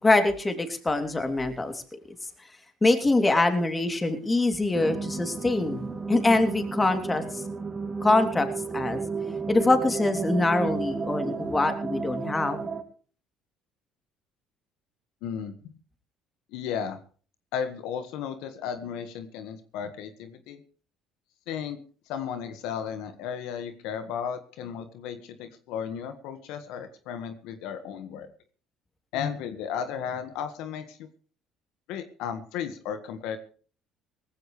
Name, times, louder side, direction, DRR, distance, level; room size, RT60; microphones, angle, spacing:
voice 1, 0.0-1.8 2.8-7.4 8.0-8.5 8.7-9.0 9.5-12.6, left 2 dB, 20° left, 7 dB, 3.0 m, -24 dB
sound 1, 4.7-12.8, right 4 dB, 25° right, 3.1 m, -33 dB
voice 2, 15.2-15.7 16.5-17.0 17.5-20.6 21.5-21.8 22.1-28.3 29.1-31.1 31.9-33.4, left 8 dB, 80° left, 9 dB, 1.6 m, -34 dB
18.5 x 15.5 x 3.3 m, 0.40 s
supercardioid pair, 85°, 0 cm